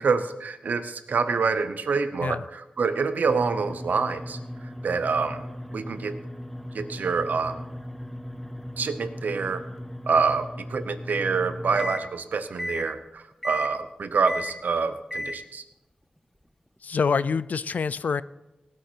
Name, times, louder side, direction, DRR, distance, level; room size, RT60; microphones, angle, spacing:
voice 1, 0.0-4.4 4.8-5.4 5.7-6.2 6.7-7.6 8.8-9.6 10.1-15.6, right 5 dB, 90° right, 11 dB, 0.9 m, -26 dB
sound 1, 3.2-12.1 12.6-12.9 13.4-13.8 14.3-14.6 15.1-15.4, left 1 dB, 5° left, 0.7 m, -36 dB
voice 2, 16.8-18.2, left 5 dB, 70° left, 17 dB, 0.4 m, -26 dB
18.0 x 8.7 x 4.6 m, 1.0 s
wide cardioid pair, 125°, 3 cm